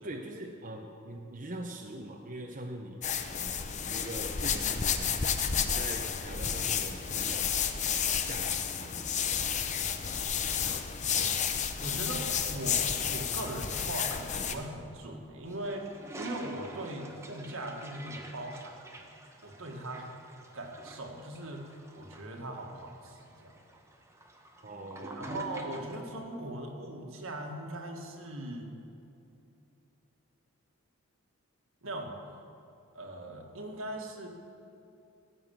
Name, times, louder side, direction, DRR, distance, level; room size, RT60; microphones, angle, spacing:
voice 1, 0.0-3.0 3.3-5.2 5.6-9.3 24.6-25.4, right 1 dB, 35° right, 2 dB, 0.8 m, -43 dB
sound 1, 3.0-14.5, left 7 dB, 35° left, 0.6 m, -31 dB
voice 2, 11.8-18.9 19.4-20.1 20.5-23.5 25.2-28.7 31.8-32.1 32.9-34.3, right 1 dB, 70° right, 2 dB, 1.8 m, -40 dB
Toilet flush, 15.5-26.1, right 2 dB, 15° right, 1.0 m, -48 dB
16.5 x 7.9 x 7.1 m, 2.8 s
head